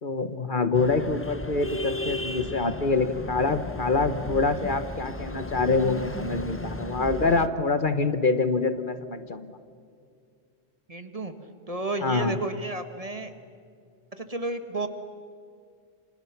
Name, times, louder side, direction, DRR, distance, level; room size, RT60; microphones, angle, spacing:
voice 1, 0.0-9.6 12.0-12.4, left 3 dB, 50° left, 10 dB, 1.3 m, -25 dB
sound 1, 0.7-7.5, left 2 dB, 15° left, 0.9 m, -35 dB
voice 2, 10.9-11.3 11.7-13.3 14.2-14.9, right 2 dB, 35° right, 8 dB, 1.7 m, -31 dB
28.5 x 26.5 x 6.0 m, 2.3 s
omnidirectional pair, 1.1 m